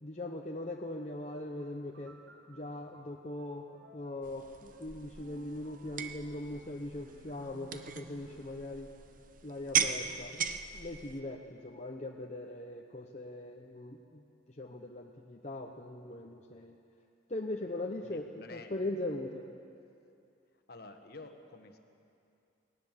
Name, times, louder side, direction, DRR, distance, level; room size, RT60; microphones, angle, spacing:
voice 1, 0.0-2.2 2.5-3.6 3.9-8.9 9.4-14.2 14.6-16.8 17.3-18.2 18.5-19.4, left 1 dB, 35° left, 1 dB, 0.8 m, -40 dB
sound 1, 1.6-8.7, right 1 dB, 85° right, 2.0 m, -58 dB
sound 2, 4.2-11.2, right 7 dB, 40° right, 0.8 m, -38 dB
voice 2, 18.0-18.7 20.7-21.8, left 3 dB, 50° left, 6 dB, 1.4 m, -50 dB
19.0 x 18.5 x 7.5 m, 2.6 s
head